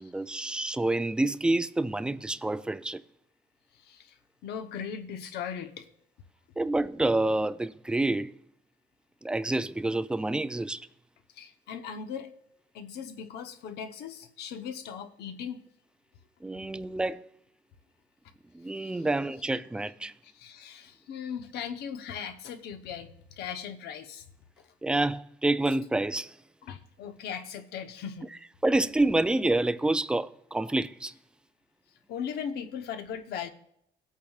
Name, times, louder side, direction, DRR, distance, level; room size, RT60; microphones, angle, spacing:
voice 1, 0.0-3.0 6.6-8.4 9.2-10.9 16.4-17.3 18.5-20.1 24.8-26.4 28.6-31.1, right 2 dB, 5° right, 0.3 m, -28 dB
voice 2, 3.8-4.1 4.4-5.9 11.4-12.3 12.7-15.6 18.8-18.9 20.2-24.2 26.7-28.3 32.1-33.5, left 7 dB, 75° left, 0.9 m, -38 dB
18.0 x 8.4 x 2.4 m
cardioid pair, 110°, 17 cm